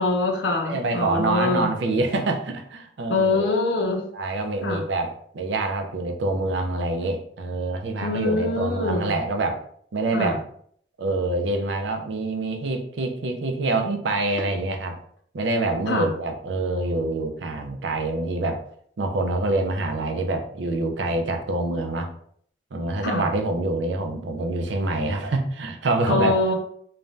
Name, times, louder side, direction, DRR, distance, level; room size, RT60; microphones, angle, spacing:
voice 1, 0.0-1.7 3.1-4.0 4.6-4.8 8.0-9.2 10.1-10.4 15.9-16.1 23.0-23.2 26.1-26.5, left 3 dB, 80° left, 1 dB, 0.5 m, -24 dB
voice 2, 0.6-3.6 4.1-9.6 9.9-10.4 11.0-15.0 15.3-18.6 19.0-22.1 22.7-26.5, right 2 dB, 80° right, 4 dB, 0.5 m, -26 dB
3.2 x 2.1 x 2.5 m, 0.62 s
head